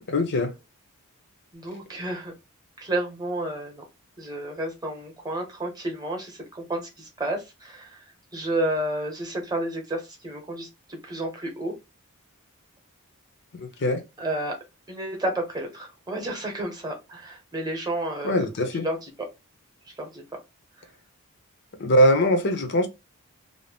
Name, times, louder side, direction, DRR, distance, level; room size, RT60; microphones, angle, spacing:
voice 1, 0.1-0.5 13.5-14.0 18.2-18.9 21.8-22.9, equal, 50° left, 0.6 m, -22 dB
voice 2, 1.5-2.3 2.8-3.8 4.2-8.0 8.3-11.7 14.2-14.5 14.9-18.4 18.8-19.1 20.0-20.2, right 1 dB, 20° right, 0.8 m, -31 dB
2.6 x 2.0 x 3.3 m
head